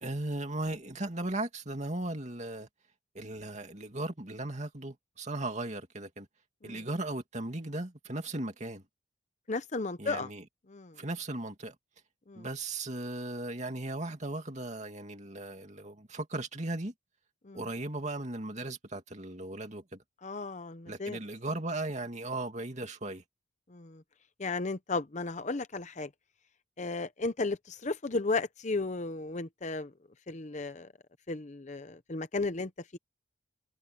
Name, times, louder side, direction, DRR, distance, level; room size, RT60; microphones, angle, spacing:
voice 1, 0.0-2.7 3.1-6.3 6.6-8.8 10.0-10.4 11.0-11.7 12.4-16.9 17.5-20.0 20.9-23.2, right 2 dB, 35° right, 2.6 m, -37 dB
voice 2, 9.5-10.3 10.7-11.0 12.3-12.4 17.4-17.7 20.2-21.2 23.7-24.0 24.4-26.1 26.8-29.9 30.3-30.9 31.3-33.0, left 3 dB, 35° left, 0.7 m, -34 dB
head